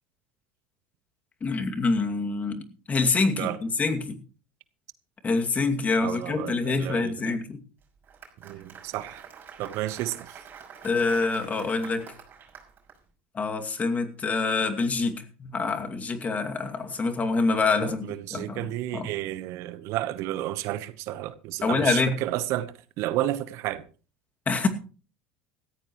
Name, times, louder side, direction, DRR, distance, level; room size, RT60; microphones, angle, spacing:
voice 1, 1.4-2.6 2.9-4.2 5.2-7.6 10.8-12.1 13.3-19.1 21.6-22.2 24.5-24.7, left 4 dB, 30° left, 2.4 m, -26 dB
voice 2, 6.0-7.4 8.4-9.2 9.6-10.3 17.8-23.8, right 14 dB, 60° right, 1.1 m, -31 dB
Applause, 7.8-13.0, right 7 dB, 40° right, 6.0 m, -47 dB
17.5 x 14.5 x 3.1 m
hypercardioid pair, 85°, 5 cm